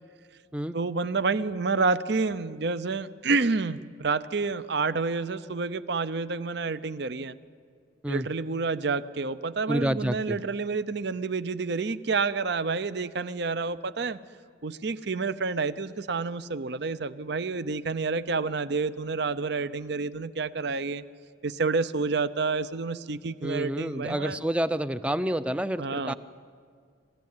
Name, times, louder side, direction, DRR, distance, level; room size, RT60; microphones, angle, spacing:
voice 1, 0.7-7.4 8.1-14.2 14.6-21.0 21.4-24.4 25.8-26.1, right 4 dB, 55° right, 15 dB, 0.6 m, -29 dB
voice 2, 9.7-10.4 23.4-26.1, right 1 dB, 5° right, 13 dB, 0.5 m, -28 dB
26.5 x 15.5 x 9.6 m, 2.1 s
head